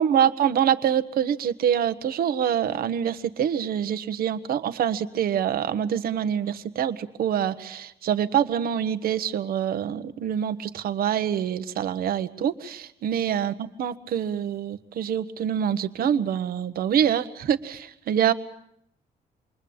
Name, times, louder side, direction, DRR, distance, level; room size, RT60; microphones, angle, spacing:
voice 1, 0.0-18.3, right 9 dB, 65° right, 12 dB, 1.4 m, -25 dB
27.5 x 23.0 x 8.8 m, 0.74 s
cardioid pair, 170°, 16 cm